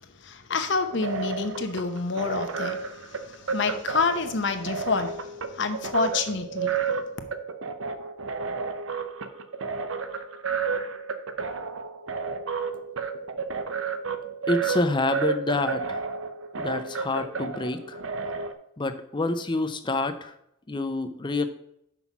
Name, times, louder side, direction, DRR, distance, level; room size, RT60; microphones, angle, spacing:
voice 1, 0.2-6.7, left 4 dB, 60° left, 8 dB, 0.9 m, -28 dB
sound 1, 0.8-18.5, right 5 dB, 80° right, 0.7 m, -31 dB
voice 2, 14.5-16.0 16.6-18.0 18.8-20.3 20.7-21.5, left 2 dB, 25° left, 9 dB, 0.6 m, -27 dB
6.0 x 5.5 x 5.9 m, 0.73 s
head